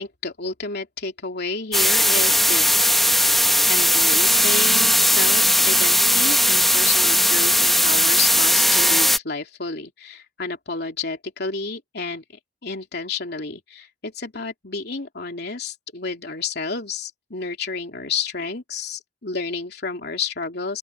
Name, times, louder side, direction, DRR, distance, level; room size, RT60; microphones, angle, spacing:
voice 1, 0.0-2.8 3.6-12.2 12.6-20.8, left 4 dB, 65° left, 3.2 m, -30 dB
sound 1, 1.7-9.2, equal, ahead, 1.1 m, -18 dB
open air
head